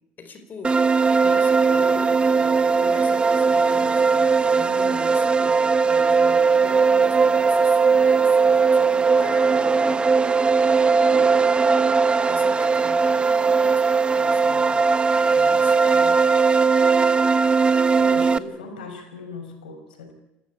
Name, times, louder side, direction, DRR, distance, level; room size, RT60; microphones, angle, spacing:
voice 1, 0.2-10.1 10.9-11.4 12.2-14.7 15.2-16.2, left 4 dB, 40° left, 8 dB, 5.1 m, -41 dB
sound 1, 0.6-18.4, right 5 dB, 25° right, 1.1 m, -19 dB
voice 2, 17.9-20.1, left 3 dB, 90° left, 6 dB, 5.2 m, -38 dB
28.5 x 13.5 x 9.0 m, 1.0 s
hypercardioid pair, 70°, 5 cm